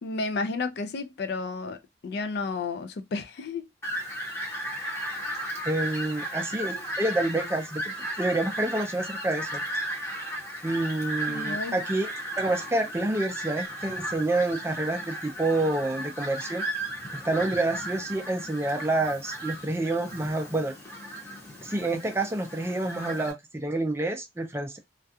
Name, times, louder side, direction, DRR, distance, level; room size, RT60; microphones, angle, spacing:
voice 1, 0.0-1.8 2.0-3.7 11.3-11.8, left 3 dB, 60° left, 0.4 m, -32 dB
Fowl, 3.8-23.3, right 1 dB, 15° left, 0.8 m, -35 dB
voice 2, 5.7-9.6 10.6-12.1 12.4-16.6 17.1-20.7 21.6-24.8, right 2 dB, 15° right, 0.4 m, -28 dB
2.4 x 2.2 x 2.6 m
head